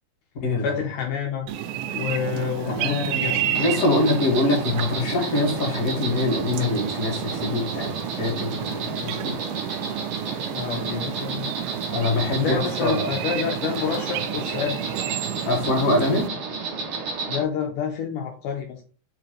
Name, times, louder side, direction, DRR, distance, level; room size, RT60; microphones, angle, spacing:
voice 1, 0.6-1.5 1.9-3.7 10.6-11.6 12.3-14.8 17.3-18.8, left 7 dB, 75° left, 2 dB, 2.1 m, -28 dB
sound 1, 1.5-16.3, right 10 dB, 90° right, 2.4 m, -31 dB
voice 2, 2.6-9.4 11.9-13.1 15.4-16.3, left 2 dB, 35° left, -1 dB, 1.5 m, -24 dB
Insect, 3.5-17.4, right 4 dB, 60° right, 1.4 m, -32 dB
5.1 x 4.7 x 5.0 m, 0.39 s
omnidirectional pair, 4.2 m